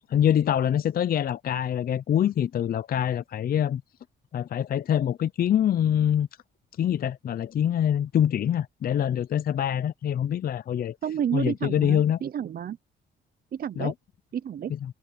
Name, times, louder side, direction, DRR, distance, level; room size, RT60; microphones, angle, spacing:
voice 1, 0.1-3.8 4.3-6.3 6.8-11.0 11.3-12.2 13.8-13.9, left 10 dB, 50° left, 0.5 m, -25 dB
voice 2, 11.0-12.8 13.5-13.9 14.3-14.7, right 9 dB, 50° right, 0.6 m, -30 dB
cardioid pair, 90°, 20 cm